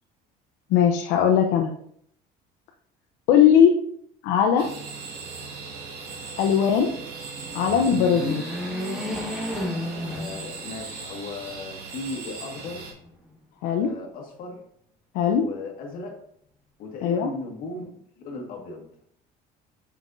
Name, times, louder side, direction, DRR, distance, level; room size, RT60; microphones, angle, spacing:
voice 1, 0.7-1.7 3.3-3.8 4.2-4.7 6.4-6.9 7.5-8.4 13.6-13.9 15.1-15.4 17.0-17.3, left 8 dB, 80° left, 2 dB, 0.7 m, -19 dB
sound 1, 4.6-12.9, right 4 dB, 75° right, 2.2 m, -39 dB
sound 2, 7.3-10.9 11.4-11.5 12.6-13.4, left 1 dB, ahead, 1.5 m, -32 dB
voice 2, 9.9-12.9 13.8-14.6 15.3-16.2 16.8-19.0, left 3 dB, 55° left, 1 dB, 1.8 m, -37 dB
7.2 x 5.8 x 2.7 m, 0.66 s
cardioid pair, 155°, 17 cm